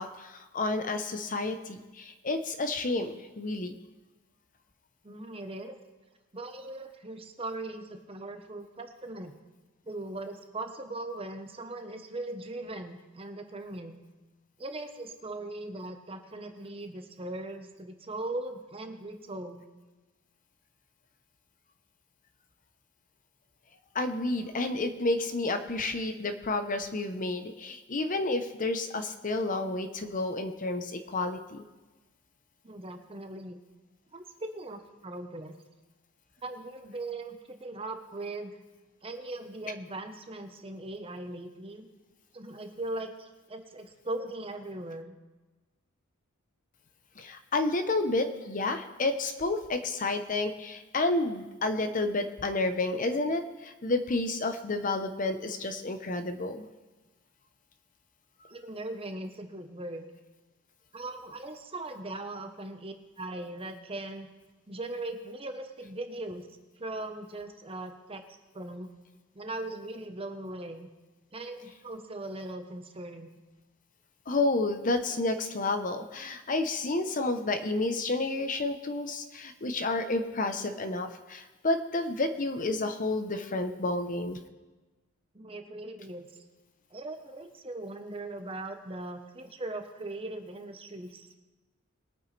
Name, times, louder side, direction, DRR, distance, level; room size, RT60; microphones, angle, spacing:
voice 1, 0.0-3.7 23.9-31.6 47.2-56.7 74.3-84.4, left 2 dB, 40° left, 8 dB, 0.8 m, -30 dB
voice 2, 5.0-5.8 6.3-9.3 9.8-14.0 14.6-19.7 32.6-33.6 34.1-35.6 36.4-38.6 39.0-41.9 42.3-45.1 58.5-60.0 60.9-64.3 64.7-66.5 66.8-68.2 68.5-68.9 69.3-70.9 71.3-73.3 85.3-86.3 86.9-91.4, right 2 dB, 25° right, 6 dB, 0.9 m, -39 dB
21.5 x 9.0 x 3.3 m, 1.2 s
head